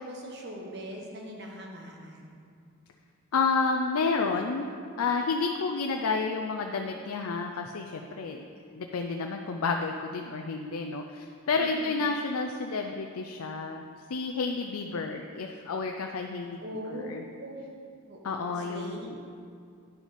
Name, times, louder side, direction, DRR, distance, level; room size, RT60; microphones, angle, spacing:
voice 1, 0.0-2.4 11.6-11.9 16.6-17.0 17.4-17.6 18.1-19.1, equal, 50° right, -1 dB, 1.4 m, -41 dB
voice 2, 3.3-4.7 5.0-13.8 14.1-16.6 16.9-17.2 18.2-19.2, left 4 dB, 85° left, 3 dB, 0.5 m, -30 dB
9.9 x 6.3 x 5.1 m, 2.3 s
head